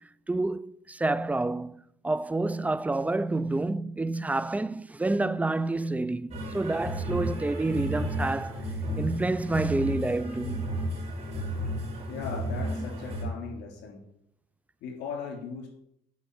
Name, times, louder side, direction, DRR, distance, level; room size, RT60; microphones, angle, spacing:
voice 1, 0.3-8.7 9.0-10.7, right 2 dB, 10° right, 0.4 m, -28 dB
sound 1, 6.3-13.3, equal, 40° right, 4.4 m, -33 dB
voice 2, 12.1-14.0 14.8-15.7, left 6 dB, 80° left, 3.5 m, -38 dB
9.5 x 5.4 x 8.2 m
cardioid pair, 110°, 17 cm